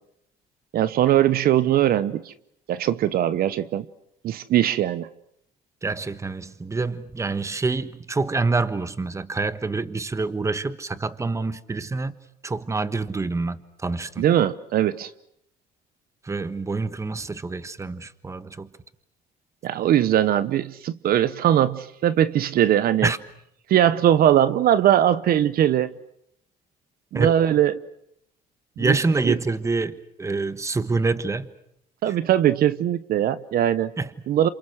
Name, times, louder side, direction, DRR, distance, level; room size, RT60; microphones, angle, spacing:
voice 1, 0.7-2.3 2.7-3.9 4.2-5.1 14.2-15.1 19.6-23.1 23.7-25.9 27.1-27.7 28.8-29.0 29.2-29.4 32.0-33.9 34.3-34.5, right 11 dB, 60° right, 0.9 m, -20 dB
voice 2, 5.8-12.2 12.4-14.2 16.2-18.7 23.0-23.2 27.1-27.3 28.8-31.5 32.1-32.2 34.0-34.1, right 3 dB, 15° right, 1.3 m, -26 dB
29.0 x 27.5 x 6.5 m
cardioid pair, 110°, 17 cm